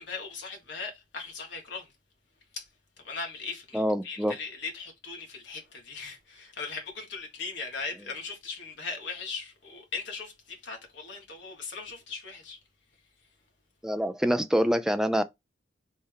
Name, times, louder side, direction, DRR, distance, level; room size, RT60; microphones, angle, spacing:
voice 1, 0.0-1.9 2.5-2.7 3.0-12.6, left 4 dB, 60° left, 1.5 m, -39 dB
voice 2, 3.7-4.4 13.8-15.2, equal, 5° right, 0.3 m, -25 dB
4.2 x 3.4 x 3.5 m
head